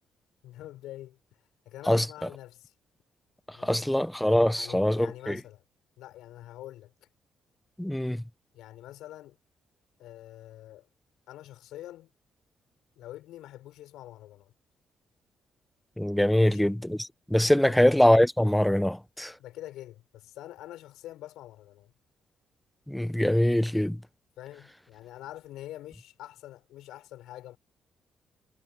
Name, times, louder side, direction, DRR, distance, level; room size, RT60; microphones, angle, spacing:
voice 1, 0.4-1.2 1.7-2.7 3.6-3.9 4.5-5.6 6.0-6.9 8.5-9.4 10.0-10.9 11.3-12.1 13.0-14.5 16.4-16.8 17.7-17.9 19.4-21.9 24.4-27.6, left 14 dB, 90° left, 6.9 m, -45 dB
voice 2, 3.6-5.3 7.8-8.2 16.0-17.0 17.3-19.3 22.9-24.0, left 1 dB, 5° left, 1.2 m, -23 dB
cardioid pair, 90°, 0 cm